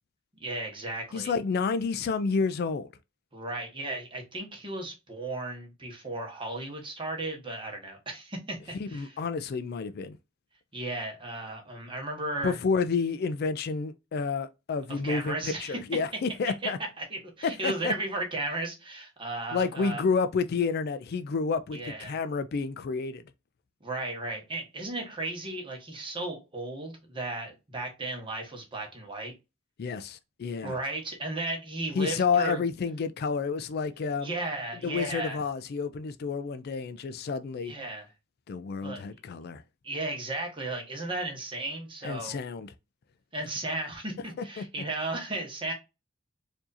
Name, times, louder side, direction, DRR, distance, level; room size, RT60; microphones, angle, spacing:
voice 1, 0.4-1.3 3.3-9.2 10.7-12.6 14.9-15.8 16.6-16.7 17.0-20.0 21.7-22.2 23.8-29.3 30.6-32.6 34.2-35.4 37.6-38.0 38.8-39.0 39.8-42.4 43.3-45.7, right 2 dB, 25° right, 1.3 m, -35 dB
voice 2, 1.1-2.9 8.8-10.2 12.4-16.8 17.4-17.9 19.5-23.2 29.8-30.8 32.0-34.3 34.8-37.7 38.5-39.6 42.0-42.7 44.6-44.7, left 5 dB, 50° left, 0.3 m, -30 dB
4.6 x 2.7 x 2.5 m
head